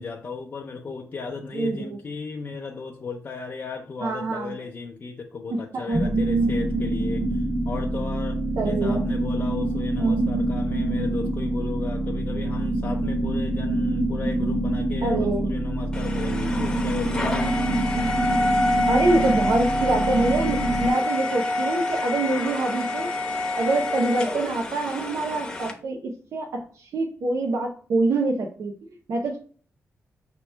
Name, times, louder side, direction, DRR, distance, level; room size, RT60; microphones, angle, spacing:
voice 1, 0.0-17.4, left 4 dB, 40° left, 0.5 m, -35 dB
voice 2, 1.5-1.9 4.0-4.5 5.5-5.6 5.9-6.1 8.6-9.0 10.0-10.2 15.0-15.5 18.9-23.1 23.5-28.7 29.1-29.4, right 2 dB, 80° right, 0.7 m, -25 dB
sound 1, 5.9-20.9, right 1 dB, 40° right, 0.6 m, -25 dB
sound 2, 15.9-25.7, left 2 dB, 15° left, 0.8 m, -27 dB
5.5 x 3.0 x 3.2 m
wide cardioid pair, 125°, 5 cm